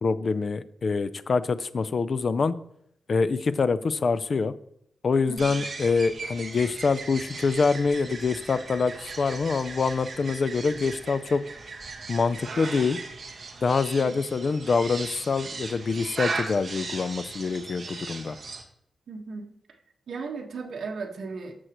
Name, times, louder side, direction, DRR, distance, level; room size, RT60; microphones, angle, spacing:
voice 1, 0.0-2.6 3.1-4.5 5.0-11.4 12.1-13.0 13.6-18.4, left 4 dB, 40° left, 0.4 m, -25 dB
sound 1, 5.4-18.6, right 3 dB, 40° right, 1.5 m, -37 dB
voice 2, 19.1-19.5 20.1-21.5, right 4 dB, 65° right, 1.5 m, -35 dB
14.5 x 6.3 x 3.0 m
wide cardioid pair, 160°, 0 cm